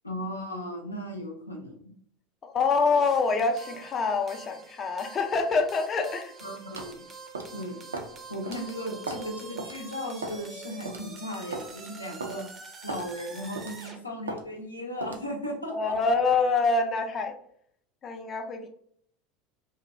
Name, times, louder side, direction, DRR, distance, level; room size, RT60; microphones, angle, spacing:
voice 1, 0.0-1.9 6.4-7.0 7.5-7.8 8.3-12.5 12.8-16.1, equal, 90° left, 1 dB, 0.5 m, -36 dB
voice 2, 2.4-6.3 8.5-8.6 15.7-17.3 18.0-18.7, left 4 dB, 35° left, 5 dB, 0.4 m, -26 dB
sound 1, 2.9-14.0, right 4 dB, 30° right, 0.5 m, -46 dB
sound 2, 6.8-6.9 7.3-7.6 7.9-8.1 8.5-8.6 9.1-9.3 9.6-9.7 10.2-10.5 10.9-11.0 11.5-11.7 12.2-12.4 12.9-13.1 13.6-13.8 14.3-14.4 15.0-15.2, right 3 dB, 80° right, 0.4 m, -36 dB
2.6 x 2.2 x 2.5 m, 0.64 s
figure-of-eight pair, 75°, 0 cm